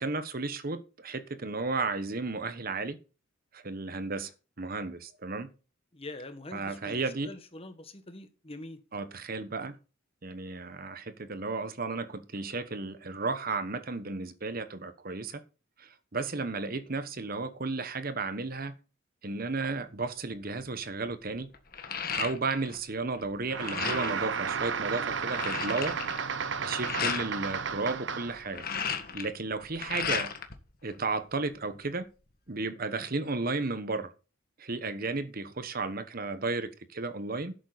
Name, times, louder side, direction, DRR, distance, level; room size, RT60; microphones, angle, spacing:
voice 1, 0.0-3.0 3.5-4.3 4.6-5.5 6.5-7.3 8.9-9.7 10.2-15.4 15.8-18.7 19.2-21.5 22.2-26.0 26.6-28.6 29.1-30.3 30.8-32.1 32.5-34.1 34.6-37.5, right 3 dB, 45° right, 1.1 m, -33 dB
voice 2, 5.9-8.8 26.5-26.8, left 2 dB, 30° left, 1.4 m, -44 dB
sound 1, 20.3-20.6 21.0-22.8 23.1-24.3 24.7-24.8 25.0-27.3 28.3-30.5 30.9-31.8, left 7 dB, 45° left, 1.6 m, -35 dB
sound 2, 23.5-28.5, right 6 dB, 60° right, 0.7 m, -33 dB
11.5 x 8.5 x 4.0 m
head